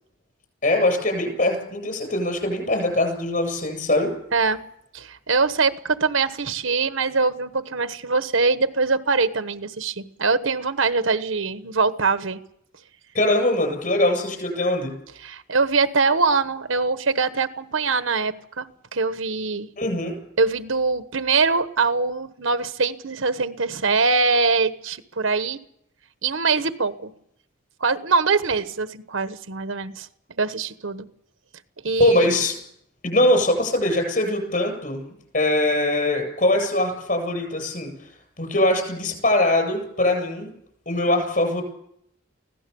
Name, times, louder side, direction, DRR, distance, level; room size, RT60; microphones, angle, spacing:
voice 1, 0.6-4.1 13.1-14.9 19.8-20.1 32.0-32.5 33.0-35.1 35.3-37.9 38.4-40.5 40.9-41.6, left 1 dB, 40° left, 5 dB, 7.8 m, -22 dB
voice 2, 4.9-12.4 15.2-19.7 20.4-25.6 26.2-27.1 27.8-30.1 30.4-31.1 31.8-32.3, right 4 dB, 70° right, 11 dB, 1.2 m, -23 dB
24.5 x 17.0 x 7.0 m, 0.72 s
head